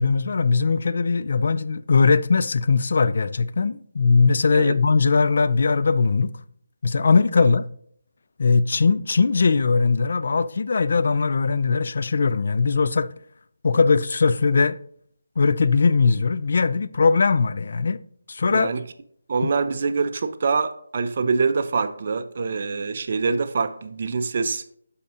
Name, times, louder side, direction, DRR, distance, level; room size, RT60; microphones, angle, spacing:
voice 1, 0.0-6.3 6.8-7.6 8.4-13.1 13.6-14.8 15.4-18.0 18.3-18.7 19.4-19.5, left 4 dB, 50° left, 0.3 m, -20 dB
voice 2, 18.5-18.8 19.3-24.6, right 4 dB, 45° right, 0.4 m, -24 dB
12.0 x 4.2 x 2.5 m
figure-of-eight pair, 155°, 0 cm